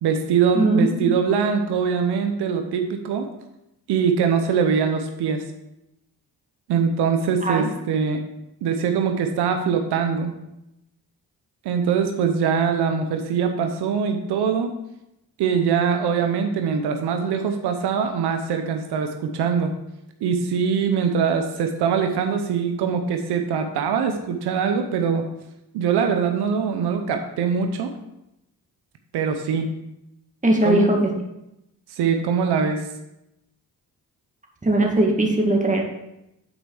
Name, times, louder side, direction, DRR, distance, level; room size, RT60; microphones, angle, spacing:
voice 1, 0.0-3.3 3.9-5.4 6.7-8.2 8.6-10.3 11.6-14.7 15.4-19.7 20.2-25.2 25.7-27.9 29.1-29.7 30.6-30.9 31.9-32.8, right 6 dB, 90° right, 5 dB, 0.8 m, -22 dB
voice 2, 0.5-1.2 7.4-7.6 30.4-31.1 34.6-35.8, right 1 dB, 20° right, 0 dB, 2.0 m, -19 dB
8.7 x 4.6 x 4.8 m, 0.87 s
cardioid pair, 65°, 38 cm